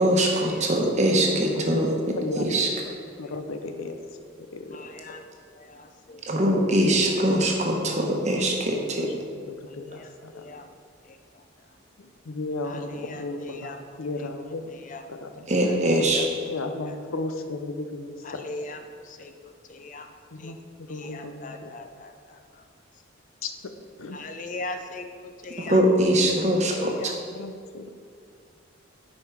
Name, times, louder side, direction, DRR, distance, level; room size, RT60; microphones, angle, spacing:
voice 1, 0.0-2.7 6.2-9.1 15.5-16.3 25.6-27.1, right 1 dB, 35° right, 1 dB, 1.0 m, -22 dB
voice 2, 1.3-1.8 2.2-2.5 2.9-4.0 4.5-4.8 7.9-8.3 8.7-8.9 9.5-10.5 12.0-14.7 15.1-15.5 16.5-18.5 20.3-20.6 20.9-21.8 23.4-23.5 24.0-24.2 26.3-26.7 27.3-27.9, left 2 dB, 85° left, 6 dB, 0.7 m, -35 dB
voice 3, 4.7-6.2 9.7-10.7 11.0-11.4 12.6-14.0 14.7-15.1 15.6-15.7 16.1-16.2 18.2-20.1 20.4-20.6 20.9-22.6 24.1-25.8 26.7-27.1, left 2 dB, 40° left, 6 dB, 0.5 m, -40 dB
9.1 x 5.5 x 4.6 m, 2.2 s
head